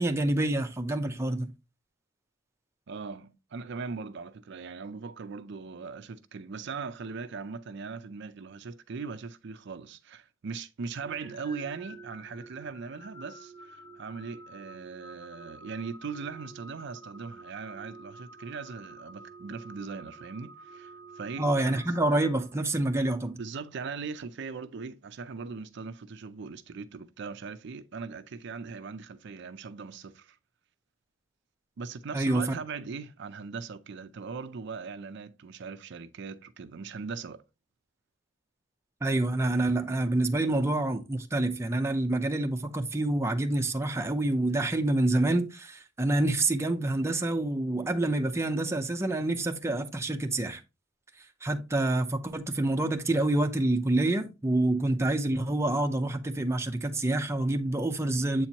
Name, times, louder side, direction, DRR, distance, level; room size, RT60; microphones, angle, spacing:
voice 1, 0.0-1.5 21.4-23.4 32.1-32.5 39.0-50.6 51.4-58.5, right 2 dB, 15° right, 0.6 m, -27 dB
voice 2, 2.9-21.8 23.4-30.4 31.8-37.4, right 5 dB, 60° right, 0.5 m, -40 dB
sound 1, 11.0-23.0, right 3 dB, 10° left, 0.9 m, -49 dB
7.8 x 4.4 x 2.8 m
head